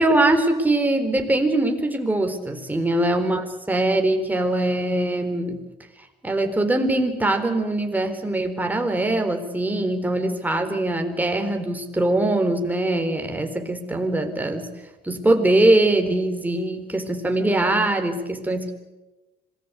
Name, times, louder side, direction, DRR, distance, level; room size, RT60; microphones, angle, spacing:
voice 1, 0.0-5.7 6.2-14.7 15.0-18.7, right 1 dB, 10° right, 5 dB, 4.1 m, -22 dB
26.0 x 19.5 x 8.3 m, 1.1 s
cardioid pair, 110°, 17 cm